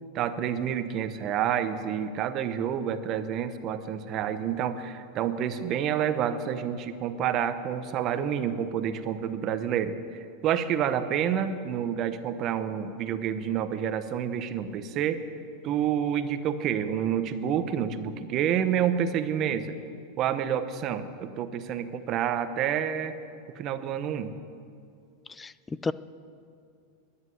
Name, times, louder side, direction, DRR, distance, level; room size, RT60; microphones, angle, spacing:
voice 1, 0.1-15.2 15.6-19.8 20.2-23.2 23.5-24.4, right 9 dB, 40° right, 10 dB, 0.9 m, -28 dB
voice 2, 25.3-25.9, left 4 dB, 15° left, 17 dB, 0.4 m, -32 dB
11.0 x 9.7 x 9.5 m, 2.4 s
supercardioid pair, 130°, 0 cm